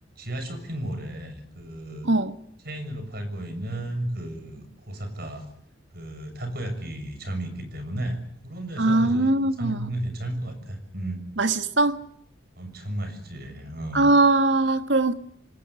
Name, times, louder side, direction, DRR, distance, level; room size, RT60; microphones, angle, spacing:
voice 1, 0.2-2.1 2.6-5.5 5.9-8.2 8.4-11.2 12.6-14.1, right 1 dB, 55° right, 6.8 m, -33 dB
voice 2, 2.1-2.4 8.8-9.9 11.4-12.0 13.9-15.1, right 2 dB, 75° right, 1.7 m, -21 dB
27.0 x 19.0 x 9.9 m
head